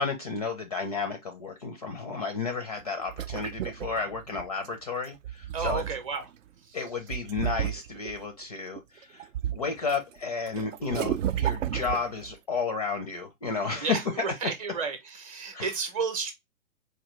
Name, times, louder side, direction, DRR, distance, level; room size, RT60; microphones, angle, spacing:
voice 1, 0.0-5.8 6.7-14.0 15.5-15.7, left 4 dB, 30° left, 0.4 m, -32 dB
sound 1, 2.8-4.7 5.1-6.3 7.1-8.2 8.8-10.0 10.2-12.3, right 11 dB, 65° right, 0.5 m, -32 dB
voice 2, 5.5-6.3 6.6-6.8 13.8-16.3, right 5 dB, 25° right, 0.7 m, -32 dB
4.5 x 2.3 x 3.0 m
hypercardioid pair, 145°, 42 cm